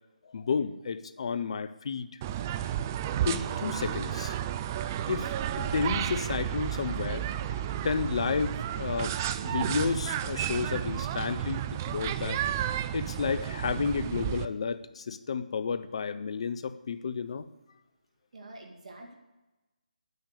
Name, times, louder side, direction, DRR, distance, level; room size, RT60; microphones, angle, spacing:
voice 1, 0.3-2.1 3.2-4.4 5.1-9.1 9.4-12.5 12.9-17.4, left 5 dB, 45° left, 13 dB, 0.6 m, -32 dB
sound 1, 2.2-14.4, right 11 dB, 20° right, 0.4 m, -32 dB
voice 2, 18.3-19.1, right 2 dB, 55° right, 2 dB, 2.0 m, -46 dB
9.8 x 9.5 x 6.6 m, 1.1 s
figure-of-eight pair, 150°, 4 cm